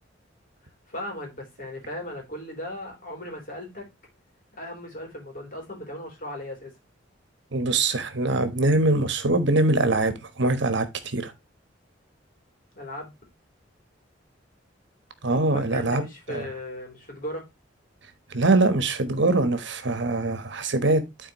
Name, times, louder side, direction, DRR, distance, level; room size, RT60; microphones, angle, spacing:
voice 1, 0.9-3.9 4.5-6.8 12.7-13.1 15.5-17.5, left 1 dB, 45° left, 3.6 m, -37 dB
voice 2, 7.5-10.9 11.1-11.3 15.2-16.0 16.3-16.5 18.3-21.0, right 2 dB, 65° right, 1.2 m, -23 dB
12.0 x 4.4 x 3.1 m
head